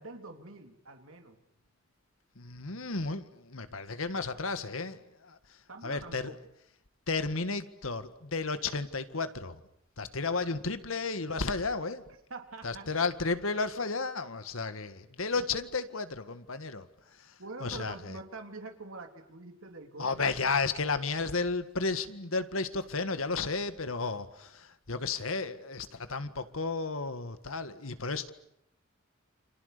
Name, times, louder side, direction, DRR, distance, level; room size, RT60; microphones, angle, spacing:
voice 1, 0.0-1.4 5.7-6.4 12.3-12.9 17.4-20.3, right 3 dB, 90° right, 4 dB, 3.2 m, -45 dB
voice 2, 2.4-6.3 7.1-9.6 10.0-12.0 12.6-18.2 20.0-28.3, left 4 dB, 85° left, 11 dB, 1.8 m, -33 dB
29.5 x 27.5 x 6.8 m, 0.78 s
head